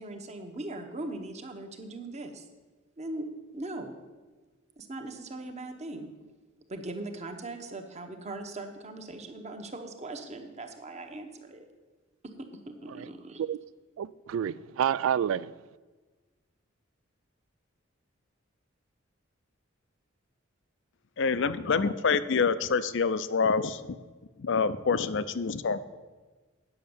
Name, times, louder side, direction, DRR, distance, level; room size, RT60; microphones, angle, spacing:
voice 1, 0.0-2.4 3.0-3.3 3.5-3.9 4.8-6.1 6.7-11.6 12.2-13.4, right 2 dB, 35° right, 5 dB, 1.0 m, -40 dB
voice 2, 14.0-15.5, right 9 dB, 75° right, 20 dB, 0.3 m, -28 dB
voice 3, 21.2-23.8 24.4-25.8, left 5 dB, 65° left, 14 dB, 0.5 m, -26 dB
9.3 x 6.4 x 7.0 m, 1.3 s
head